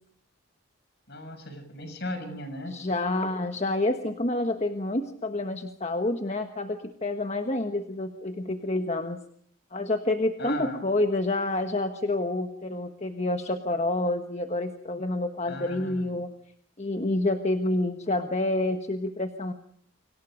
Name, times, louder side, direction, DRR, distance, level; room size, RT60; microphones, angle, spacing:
voice 1, 1.1-2.8 10.4-10.9 15.5-16.1, left 1 dB, 55° left, 8 dB, 6.8 m, -37 dB
voice 2, 2.7-9.2 9.7-16.3 16.8-19.5, left 2 dB, 35° left, 6 dB, 1.4 m, -28 dB
29.5 x 25.0 x 5.2 m, 0.63 s
head